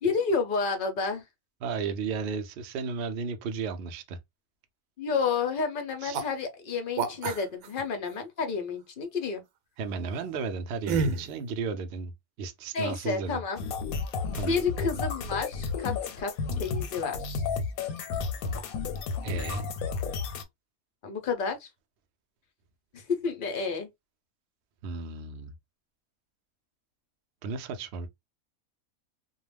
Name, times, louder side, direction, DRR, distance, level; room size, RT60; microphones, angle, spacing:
voice 1, 0.0-1.2 5.0-9.4 12.7-13.6 14.5-17.4 21.0-21.7 22.9-23.9, left 5 dB, 55° left, 0.6 m, -30 dB
voice 2, 1.6-4.2 6.0-6.2 9.8-12.1 12.4-13.4 14.3-14.6 19.2-19.6 24.8-25.5 27.4-28.1, right 5 dB, 65° right, 0.6 m, -34 dB
sound 1, 6.1-6.3 7.0-7.8 10.9-11.3, right 5 dB, 80° right, 1.0 m, -28 dB
sound 2, 13.6-20.4, left 5 dB, 90° left, 1.0 m, -32 dB
2.3 x 2.1 x 3.2 m
omnidirectional pair, 1.5 m